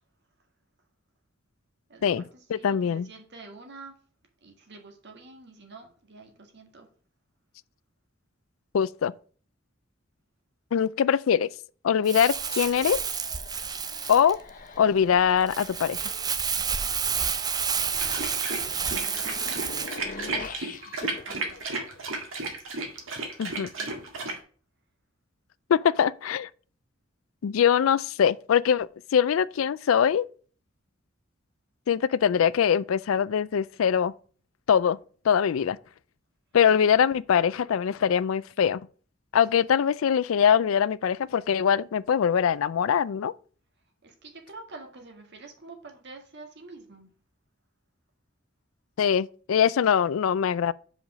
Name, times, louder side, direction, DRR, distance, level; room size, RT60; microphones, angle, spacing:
voice 1, 1.9-4.0 4.4-6.9 20.9-21.9 23.1-24.0 44.0-47.1, right 3 dB, 60° right, 1.8 m, -47 dB
voice 2, 2.5-3.1 8.7-9.1 10.7-11.5 11.8-13.0 14.1-14.4 14.8-16.1 23.4-23.7 25.7-26.5 27.4-30.3 31.9-34.1 34.7-35.0 35.2-35.8 36.5-38.8 39.3-43.3 49.0-50.7, left 8 dB, 85° left, 0.4 m, -23 dB
Crumpling crinkling, 12.0-20.0, right 6 dB, 20° right, 0.5 m, -30 dB
sound 1, 12.3-22.5, left 4 dB, 45° left, 0.7 m, -44 dB
sound 2, 17.9-24.4, right 3 dB, 80° right, 1.9 m, -33 dB
5.5 x 5.1 x 6.0 m
head